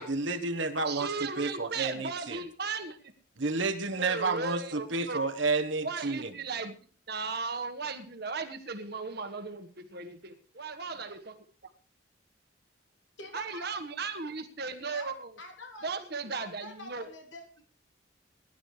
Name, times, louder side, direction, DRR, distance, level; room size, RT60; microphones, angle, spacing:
voice 1, 0.0-2.4 3.4-6.3, right 3 dB, 70° right, 8 dB, 1.4 m, -31 dB
voice 2, 0.8-3.0 4.0-5.2 5.8-6.7 7.1-11.3 13.3-15.3 15.8-17.1, right 4 dB, 55° right, 7 dB, 1.6 m, -36 dB
voice 3, 13.2-13.7 14.9-15.9 16.3-17.6, equal, 70° left, 2 dB, 3.4 m, -45 dB
21.0 x 11.5 x 3.4 m, 0.41 s
head